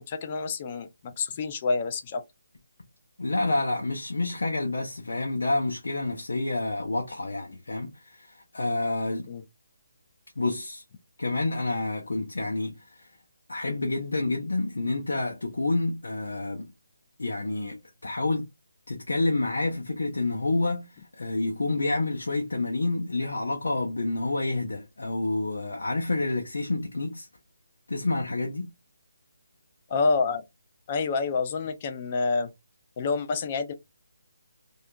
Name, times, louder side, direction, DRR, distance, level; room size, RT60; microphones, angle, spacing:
voice 1, 0.0-2.2 9.3-9.4 29.9-30.4 30.9-32.5 33.0-33.7, left 4 dB, 30° left, 0.4 m, -28 dB
voice 2, 3.2-9.3 10.4-10.8 11.2-13.1 13.5-16.6 17.2-17.8 18.0-18.5 18.9-27.3 27.9-28.7, left 2 dB, 85° left, 0.6 m, -28 dB
2.7 x 2.4 x 2.3 m
hypercardioid pair, 165°, 0 cm